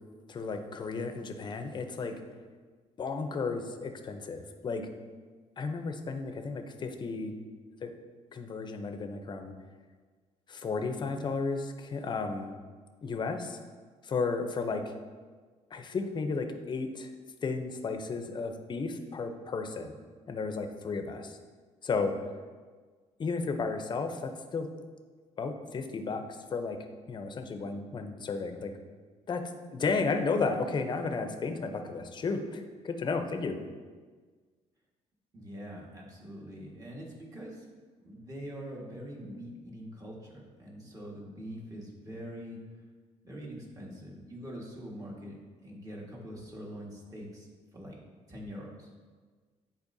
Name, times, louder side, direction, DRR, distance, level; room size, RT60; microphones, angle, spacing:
voice 1, 0.3-2.1 3.0-4.9 5.6-7.3 7.8-7.9 8.3-9.5 10.5-12.6 13.0-13.6 14.0-14.9 15.7-17.1 17.4-20.0 20.3-21.4 21.8-22.1 23.2-24.7 25.4-26.2 26.5-26.8 27.1-28.7 29.3-29.4 29.7-33.6, left 4 dB, 40° left, 6 dB, 0.6 m, -33 dB
voice 2, 35.3-37.6 38.0-42.6 43.2-48.0 48.3-48.9, equal, 30° right, -3 dB, 1.6 m, -44 dB
9.9 x 4.3 x 2.7 m, 1.5 s
cardioid pair, 105°, 12 cm